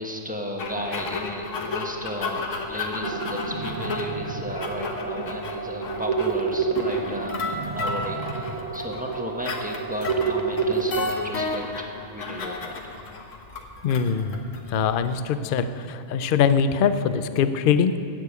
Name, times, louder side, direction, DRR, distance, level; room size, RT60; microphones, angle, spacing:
voice 1, 0.0-12.8, equal, 5° right, 1 dB, 1.1 m, -34 dB
sound 1, 0.6-15.2, left 3 dB, 80° left, 1.5 m, -33 dB
sound 2, 3.0-11.0, right 5 dB, 40° right, 0.8 m, -29 dB
voice 2, 13.8-18.0, left 7 dB, 55° left, 11 dB, 0.6 m, -23 dB
16.0 x 6.8 x 8.2 m, 2.6 s
omnidirectional pair, 1.3 m